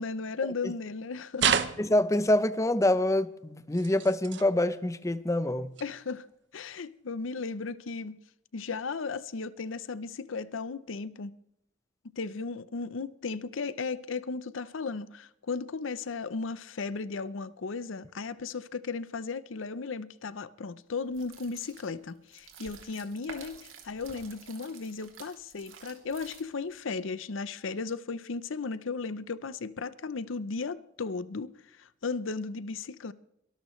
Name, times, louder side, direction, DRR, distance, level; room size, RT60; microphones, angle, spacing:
voice 1, 0.0-1.5 5.8-6.3 6.5-8.2 8.5-11.3 12.2-33.1, left 4 dB, 80° left, 0.6 m, -35 dB
sound 1, 1.4-2.3 3.7-4.5 5.8-5.9 6.7-6.8, right 7 dB, 60° right, 0.8 m, -29 dB
voice 2, 1.8-5.7, left 1 dB, 15° left, 0.6 m, -26 dB
sound 2, 21.1-26.8, right 5 dB, 85° right, 2.9 m, -50 dB
23.5 x 13.0 x 3.2 m
head